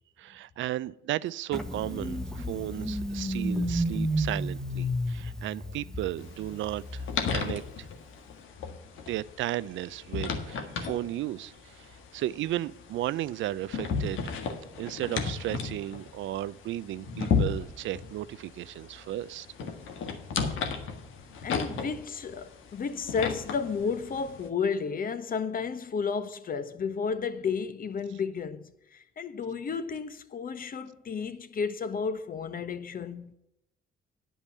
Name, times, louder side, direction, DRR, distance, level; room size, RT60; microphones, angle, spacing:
voice 1, 0.2-7.9 9.1-14.2 14.8-19.5, right 14 dB, 75° right, 0.4 m, -34 dB
Engine starting, 1.5-8.0, equal, 5° left, 1.0 m, -32 dB
sound 1, 6.2-24.5, left 5 dB, 80° left, 1.5 m, -35 dB
voice 2, 21.4-33.3, left 5 dB, 45° left, 1.0 m, -32 dB
9.9 x 5.4 x 8.3 m
cardioid pair, 90°, 20 cm